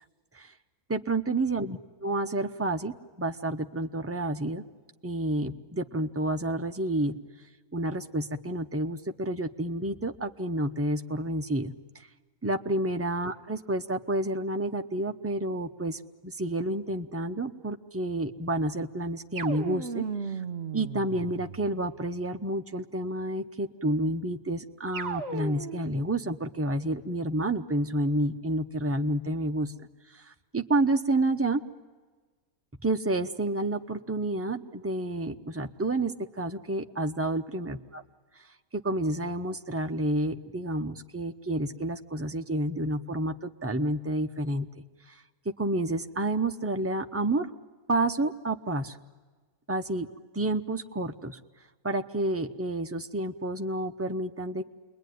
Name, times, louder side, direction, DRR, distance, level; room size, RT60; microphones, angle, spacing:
voice 1, 0.9-1.8 2.0-4.6 5.0-7.1 7.7-11.7 12.4-20.0 20.7-29.7 30.1-31.6 32.8-38.0 38.7-44.8 45.6-47.5 47.9-49.0 49.7-50.1 50.3-51.4 51.8-54.6, right 1 dB, 15° right, 5 dB, 0.4 m, -29 dB
sound 1, 19.4-21.8 24.9-26.0, right 5 dB, 45° right, 1.3 m, -36 dB
29.0 x 22.0 x 9.4 m, 1.4 s
omnidirectional pair, 1.7 m